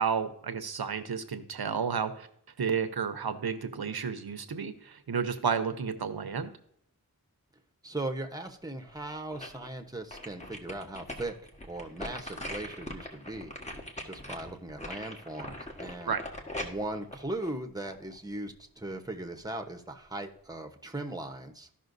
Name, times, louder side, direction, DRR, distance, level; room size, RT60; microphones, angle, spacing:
voice 1, 0.0-2.3 2.6-6.5 16.1-16.2, right 6 dB, 90° right, 10 dB, 0.8 m, -31 dB
voice 2, 7.8-11.3 11.6-13.5 14.0-16.2 16.6-21.7, right 2 dB, 10° right, 4 dB, 0.9 m, -38 dB
sound 1, 8.8-9.7 10.1-18.2 18.6-18.7, left 1 dB, 20° left, 1.3 m, -41 dB
14.5 x 5.6 x 2.6 m, 0.69 s
wide cardioid pair, 65°, 37 cm